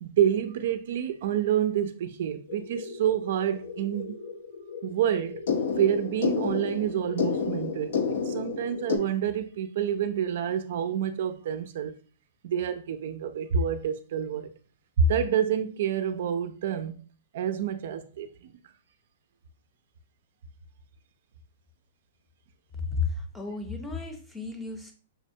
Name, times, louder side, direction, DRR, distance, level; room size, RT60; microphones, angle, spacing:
voice 1, 0.0-4.2 4.8-5.4 5.8-11.9 12.4-14.5 15.0-17.0 17.3-18.3, right 8 dB, 60° right, 0.4 m, -28 dB
sound 1, 2.5-9.0, left 5 dB, 75° left, 0.6 m, -31 dB
voice 2, 22.8-24.9, left 4 dB, 5° left, 0.6 m, -33 dB
4.9 x 2.1 x 2.7 m
hypercardioid pair, 150°, 0 cm